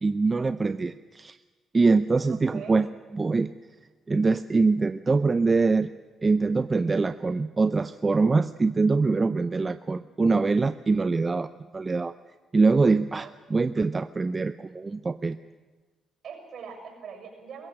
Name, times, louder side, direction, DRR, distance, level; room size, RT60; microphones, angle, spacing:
voice 1, 0.0-1.4 1.7-2.9 3.1-3.5 4.1-5.9 6.2-12.1 12.5-15.4, right 3 dB, 30° right, 12 dB, 0.6 m, -24 dB
voice 2, 2.3-2.8 13.2-13.3 16.2-17.7, right 6 dB, 65° right, 4 dB, 6.9 m, -42 dB
23.0 x 15.0 x 9.1 m, 1.3 s
cardioid pair, 90°, 0 cm